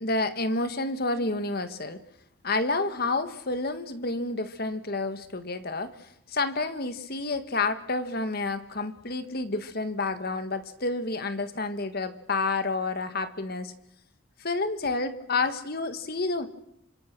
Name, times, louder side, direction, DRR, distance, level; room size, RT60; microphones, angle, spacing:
voice 1, 0.0-2.0 2.4-13.7 14.4-16.5, left 3 dB, 50° left, 10 dB, 1.7 m, -29 dB
28.5 x 25.5 x 6.1 m, 0.79 s
head